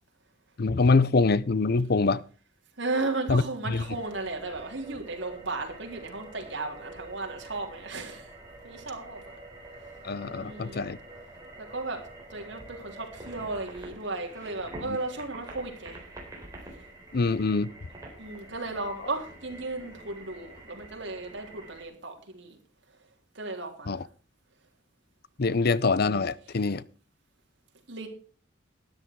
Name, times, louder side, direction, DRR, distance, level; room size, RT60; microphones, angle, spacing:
voice 1, 0.6-2.2 3.3-3.8 10.0-11.0 14.8-15.0 17.1-17.7 23.9-24.0 25.4-26.8, left 3 dB, 55° left, 0.6 m, -24 dB
voice 2, 2.8-8.3 8.6-9.4 10.3-10.8 11.6-12.0 12.3-16.0 18.2-22.6 23.4-24.0 25.5-25.6 27.9-28.1, right 3 dB, 70° right, 3.6 m, -35 dB
sound 1, 3.8-21.8, right 1 dB, 20° right, 4.0 m, -47 dB
13.0 x 10.5 x 4.6 m
head